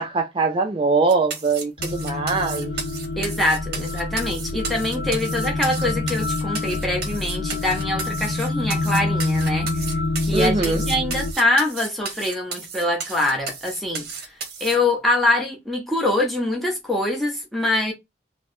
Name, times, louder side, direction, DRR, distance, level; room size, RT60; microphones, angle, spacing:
voice 1, 0.0-2.7 10.3-10.8, right 3 dB, 30° right, 0.4 m, -22 dB
sound 1, 1.1-14.8, right 5 dB, 55° right, 0.8 m, -34 dB
sound 2, 1.8-11.3, left 2 dB, 60° left, 0.4 m, -27 dB
voice 2, 3.2-9.9 10.2-14.3 14.6-17.9, left 1 dB, ahead, 0.8 m, -24 dB
2.8 x 2.1 x 3.1 m
head